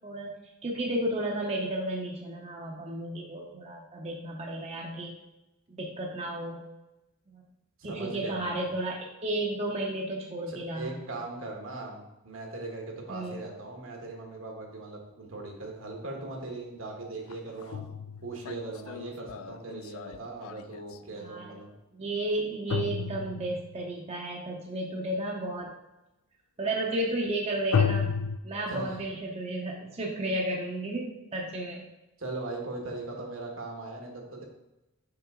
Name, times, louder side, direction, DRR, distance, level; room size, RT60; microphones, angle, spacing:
voice 1, 0.0-0.4 0.6-5.1 5.7-6.6 7.3-7.4 7.8-11.0 13.1-13.4 21.2-21.6 21.9-25.7 26.6-28.1 28.4-31.9, right 1 dB, 30° right, -1 dB, 0.7 m, -33 dB
voice 2, 7.8-8.7 10.5-17.8 18.2-21.7 28.7-29.0 32.2-34.4, right 2 dB, 70° right, 1 dB, 1.4 m, -39 dB
sound 1, 16.3-16.4 17.3-21.0 22.7-23.8 27.7-28.4, left 7 dB, 85° left, 0.4 m, -31 dB
5.8 x 5.1 x 3.7 m, 0.97 s
head